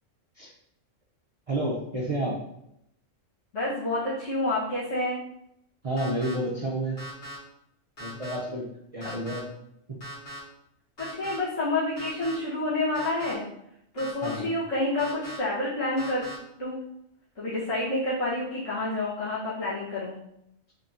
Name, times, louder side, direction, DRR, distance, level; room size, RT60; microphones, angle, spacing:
voice 1, 1.5-2.4 5.8-7.0 8.0-8.7 8.9-9.5 14.2-14.5, right 1 dB, 50° right, -4 dB, 0.4 m, -30 dB
voice 2, 3.5-5.2 9.0-9.1 11.0-13.4 13.9-16.2 16.6-16.8 17.3-20.2, left 2 dB, 70° left, -11 dB, 1.6 m, -28 dB
sound 1, 6.0-6.3 7.0-7.4 8.0-8.4 9.0-9.4 10.0-10.4 11.0-11.4 12.0-12.3 12.9-13.3 14.0-14.4 15.0-15.4 16.0-16.4, right 1 dB, 45° left, 1.5 m, -40 dB
3.6 x 2.7 x 3.6 m, 0.77 s
omnidirectional pair, 1.3 m